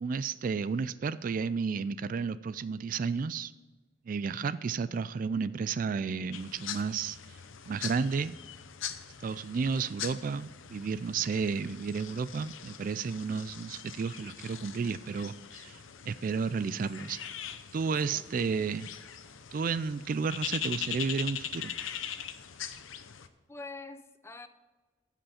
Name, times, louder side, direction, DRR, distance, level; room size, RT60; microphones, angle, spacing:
voice 1, 0.0-3.5 4.1-7.2 7.7-8.3 9.2-15.8 16.1-17.2 17.7-18.9 19.5-21.7, right 5 dB, 45° right, 15 dB, 0.3 m, -32 dB
sound 1, 6.3-23.3, left 9 dB, 90° left, 0.7 m, -42 dB
voice 2, 17.9-18.8 23.5-24.5, left 3 dB, 15° left, 10 dB, 0.5 m, -46 dB
15.5 x 5.5 x 4.3 m, 1.3 s
head